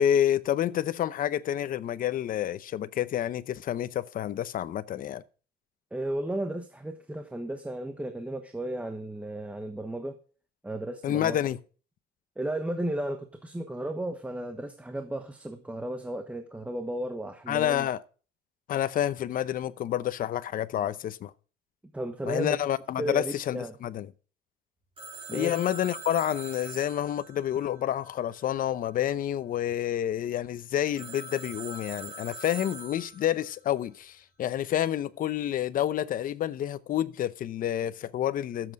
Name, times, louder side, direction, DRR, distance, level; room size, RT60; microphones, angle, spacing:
voice 1, 0.0-5.2 11.0-11.6 17.5-18.0 18.7-21.3 22.2-24.1 25.3-38.7, left 11 dB, 55° left, 0.8 m, -29 dB
voice 2, 5.9-10.2 10.6-11.4 12.4-17.9 21.9-22.7 23.0-23.7 25.3-25.6, right 1 dB, 10° right, 1.1 m, -34 dB
Telephone, 25.0-28.6 31.0-33.5, right 2 dB, 35° right, 4.5 m, -43 dB
13.5 x 7.8 x 4.9 m
cardioid pair, 110°, 17 cm